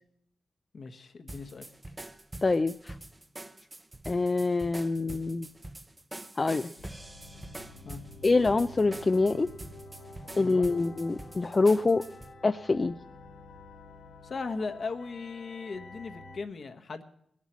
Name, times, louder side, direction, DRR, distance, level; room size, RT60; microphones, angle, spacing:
voice 1, 0.7-1.7 7.8-8.0 10.4-10.7 14.2-17.0, left 4 dB, 60° left, 6 dB, 1.2 m, -38 dB
sound 1, 1.3-12.3, right 1 dB, 20° right, 0.7 m, -45 dB
voice 2, 2.4-2.9 4.1-5.5 6.4-6.7 8.2-9.5 10.4-12.0 12.4-12.9, left 3 dB, 35° left, 8 dB, 0.4 m, -25 dB
sound 2, 6.8-16.4, left 2 dB, 85° left, 1.7 m, -49 dB
19.5 x 7.4 x 7.3 m, 0.74 s
cardioid pair, 60°, 0 cm